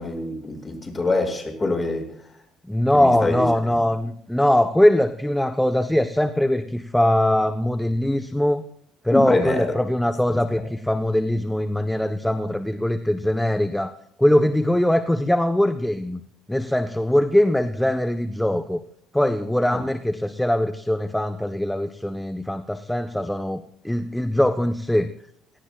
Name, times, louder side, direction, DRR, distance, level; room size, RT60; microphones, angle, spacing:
voice 1, 0.0-2.1 2.9-3.5 9.1-9.7 10.3-10.4 19.7-19.8, left 2 dB, 25° left, 3 dB, 7.1 m, -25 dB
voice 2, 2.7-8.6 9.0-13.9 14.2-16.2 16.5-18.8 19.1-25.1, left 1 dB, 5° left, 8 dB, 1.1 m, -21 dB
28.5 x 18.0 x 2.5 m, 0.68 s
supercardioid pair, 80°, 0 cm